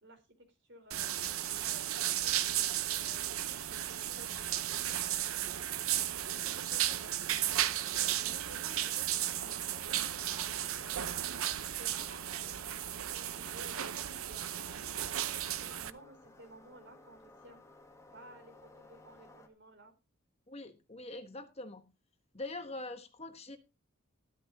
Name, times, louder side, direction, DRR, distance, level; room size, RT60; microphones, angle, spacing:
voice 1, 0.0-3.4 3.7-7.7 8.2-14.9 15.5-17.6 18.1-19.9, right 1 dB, 55° right, 3.9 m, -56 dB
sound 1, 0.9-15.9, right 12 dB, 80° right, 0.8 m, -34 dB
sound 2, 9.0-19.5, left 2 dB, 15° left, 1.7 m, -59 dB
voice 2, 20.5-21.9 22.3-23.6, left 2 dB, 30° left, 1.2 m, -43 dB
13.5 x 12.0 x 2.7 m
head